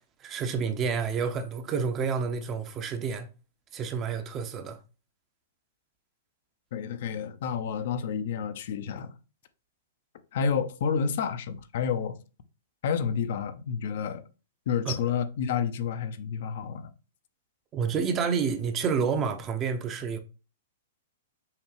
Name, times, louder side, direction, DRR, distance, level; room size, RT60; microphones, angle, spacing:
voice 1, 0.2-3.3 3.7-4.8 14.8-15.1 17.7-20.2, right 6 dB, 25° right, 0.6 m, -29 dB
voice 2, 6.7-9.2 10.3-12.2 12.8-14.2 14.7-16.9, left 7 dB, 60° left, 0.5 m, -30 dB
5.6 x 2.2 x 3.2 m
hypercardioid pair, 130°, 0 cm